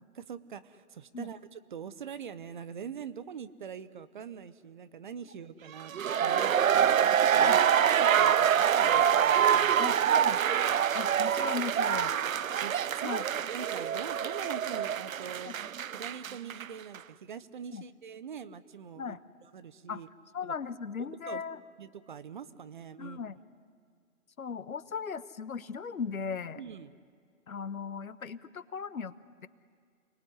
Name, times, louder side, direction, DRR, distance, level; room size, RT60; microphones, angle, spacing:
voice 1, 0.1-7.5 7.8-9.8 12.6-13.2 13.5-15.5 15.9-20.1 20.4-20.5 21.0-21.4 21.8-23.2 26.5-27.0, right 7 dB, 35° right, 14 dB, 0.9 m, -43 dB
sound 1, 5.8-16.7 16.9-17.0, right 9 dB, 70° right, 0.7 m, -26 dB
voice 2, 9.8-10.4 10.9-12.1 13.0-13.2 15.4-15.5 17.7-17.8 19.0-19.2 19.9-20.0 20.3-21.6 23.0-23.4 24.4-26.6 27.5-29.1, left 6 dB, 75° left, 15 dB, 1.3 m, -37 dB
28.5 x 19.5 x 9.9 m, 2.2 s
figure-of-eight pair, 150°, 42 cm